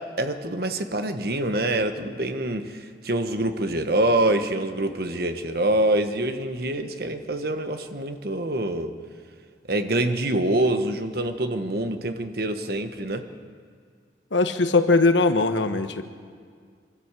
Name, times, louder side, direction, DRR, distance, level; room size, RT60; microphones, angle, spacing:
voice 1, 0.0-8.9 9.7-13.2, right 1 dB, 55° right, 8 dB, 1.3 m, -25 dB
voice 2, 14.3-16.0, left 3 dB, 90° left, 9 dB, 1.2 m, -20 dB
24.0 x 13.5 x 8.3 m, 2.1 s
head